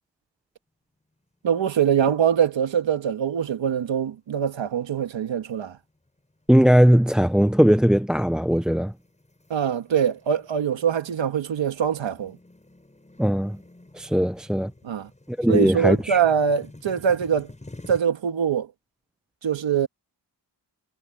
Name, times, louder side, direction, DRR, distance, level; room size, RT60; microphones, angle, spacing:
voice 1, 1.4-5.8 9.5-12.4 14.8-15.1 15.5-17.5 17.9-18.7 19.4-19.9, right 8 dB, 85° right, 2.0 m, -23 dB
sound 1, 1.6-2.1 2.4-2.5 3.2-3.7 4.3-4.5 5.1-18.0, left 2 dB, 15° left, 6.8 m, -49 dB
voice 2, 6.5-8.9 13.2-13.6 13.9-14.7 15.3-16.2, equal, ahead, 0.4 m, -19 dB
wide cardioid pair, 120°, 44 cm